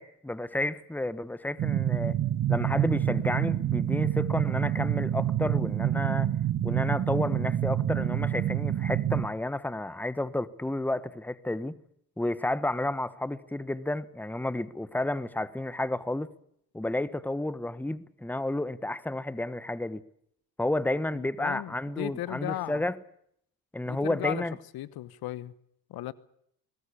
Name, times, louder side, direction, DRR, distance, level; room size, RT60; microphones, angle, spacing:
voice 1, 0.0-2.2 2.5-6.3 6.6-11.8 12.2-16.3 16.7-20.0 20.6-23.0 23.7-24.5, left 1 dB, 5° left, 1.3 m, -31 dB
sound 1, 1.6-9.3, right 11 dB, 55° right, 1.5 m, -27 dB
voice 2, 21.1-22.8 23.9-24.4 24.7-25.5 25.9-26.1, left 14 dB, 75° left, 1.2 m, -36 dB
21.5 x 19.0 x 8.5 m
supercardioid pair, 75°, 37 cm